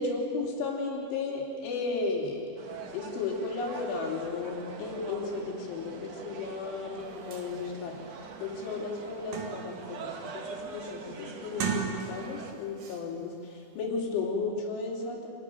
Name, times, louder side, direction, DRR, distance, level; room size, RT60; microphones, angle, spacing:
voice 1, 0.0-2.4 2.9-8.0 8.4-15.3, left 3 dB, 80° left, -1 dB, 5.5 m, -34 dB
sound 1, 2.6-12.5, right 4 dB, 75° right, 1.4 m, -44 dB
sound 2, 7.0-7.1 7.3-7.5 8.0-8.1 8.5-9.9 10.3-10.6 11.4-12.4 12.8-13.0, right 6 dB, 55° right, 3.0 m, -36 dB
26.0 x 13.5 x 9.3 m, 2.5 s
omnidirectional pair, 5.4 m